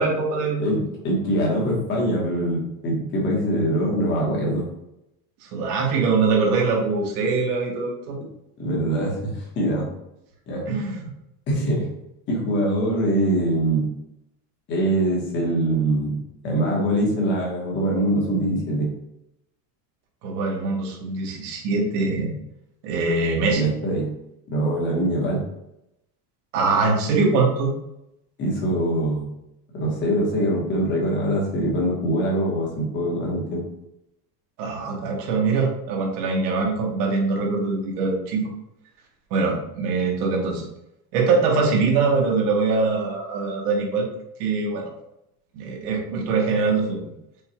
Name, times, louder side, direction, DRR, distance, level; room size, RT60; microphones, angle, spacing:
voice 1, 0.0-0.8 5.4-8.2 10.7-11.1 20.2-22.3 22.8-23.7 26.5-27.7 34.6-38.5 39.3-40.6 41.1-44.1 44.4-44.9 45.5-47.0, right 4 dB, 80° right, 0 dB, 1.3 m, -23 dB
voice 2, 0.6-4.7 8.6-9.9 10.5-10.6 11.5-11.9 12.3-13.8 14.7-16.2 16.4-18.9 23.5-24.1 24.5-25.4 28.4-29.2 29.7-33.6, right 1 dB, 25° left, -2 dB, 1.0 m, -23 dB
5.2 x 2.3 x 2.9 m, 0.84 s
cardioid pair, 180°, 45 cm